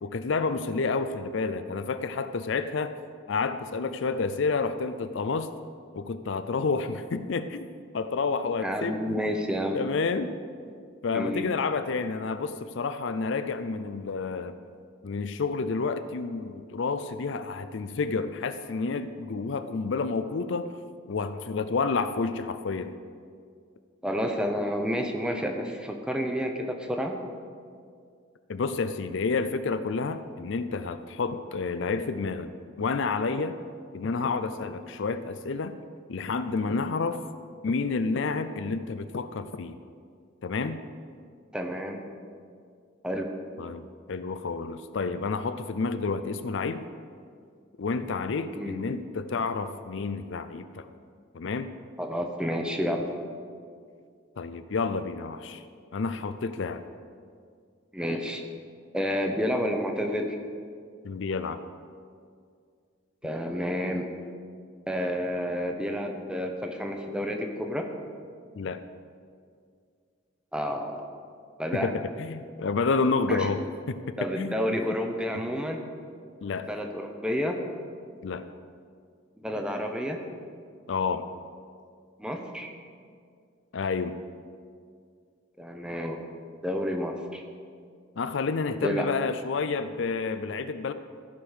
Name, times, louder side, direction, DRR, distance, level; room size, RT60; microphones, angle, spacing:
voice 1, 0.0-2.9 3.3-5.5 5.9-7.7 7.9-9.2 9.7-10.3 11.0-14.5 15.0-20.8 21.1-23.0 28.5-32.5 32.8-33.5 33.9-35.8 36.1-37.2 37.6-39.8 40.4-40.8 43.6-46.9 47.8-50.9 51.3-51.7 54.4-55.6 55.9-56.8 61.0-61.6 68.5-68.8 71.7-74.8 75.3-75.4 76.4-76.7 78.2-78.5 80.9-81.3 83.7-84.2 88.2-90.9, left 4 dB, 65° left, 11 dB, 0.5 m, -29 dB
voice 2, 8.6-9.8 11.1-11.5 24.0-27.2 41.5-42.0 43.0-43.3 48.5-48.9 52.0-53.2 57.9-58.4 58.9-60.4 63.2-64.1 64.9-67.9 70.5-71.1 71.6-72.0 73.3-73.5 74.2-75.8 76.7-77.6 79.4-80.2 82.2-82.7 85.6-86.2 86.6-87.4 88.8-89.1, equal, 5° right, 3 dB, 0.8 m, -30 dB
15.0 x 5.1 x 6.4 m, 2.2 s
head